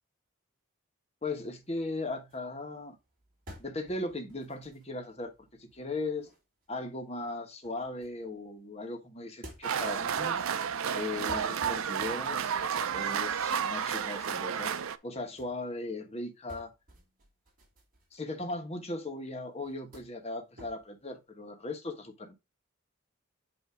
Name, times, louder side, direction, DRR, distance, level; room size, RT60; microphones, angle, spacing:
voice 1, 1.2-3.0 3.6-5.3 5.6-6.3 6.7-10.4 10.9-12.6 12.9-14.7 15.0-16.7 18.1-22.3, left 2 dB, 30° left, 1.2 m, -38 dB
sound 1, 1.3-8.7 9.1-15.6 15.9-19.0 19.3-21.2, equal, 40° right, 2.5 m, -55 dB
sound 2, 9.6-15.0, right 7 dB, 75° right, 0.5 m, -31 dB
8.3 x 2.8 x 4.9 m
head